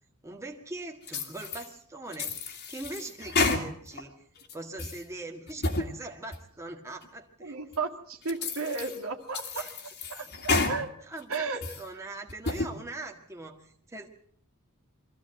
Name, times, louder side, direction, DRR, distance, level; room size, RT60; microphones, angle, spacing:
voice 1, 0.2-4.1 4.5-7.6 9.5-10.6 11.0-14.1, right 2 dB, 15° right, 1 dB, 1.7 m, -42 dB
sound 1, 1.1-1.7 2.1-4.0 4.4-5.0 5.5-5.9 6.3-6.4 7.0-7.1 7.7-7.8 8.3-9.0 9.3-10.8 11.2-11.8 12.3-12.7, left 3 dB, 50° left, 2.4 m, -31 dB
voice 2, 7.4-9.7 10.1-10.9 11.3-11.6, right 4 dB, 70° right, 2 dB, 2.2 m, -34 dB
23.0 x 15.0 x 7.7 m, 0.64 s
head